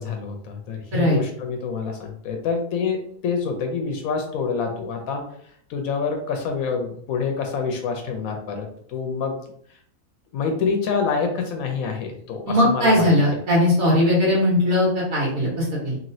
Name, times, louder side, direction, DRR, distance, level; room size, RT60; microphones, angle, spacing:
voice 1, 0.0-5.2 5.7-9.4 10.3-13.1, left 5 dB, 85° left, 4 dB, 1.0 m, -27 dB
voice 2, 12.5-16.0, left 1 dB, 75° right, -5 dB, 1.5 m, -19 dB
3.0 x 2.9 x 2.6 m, 0.64 s
omnidirectional pair, 1.5 m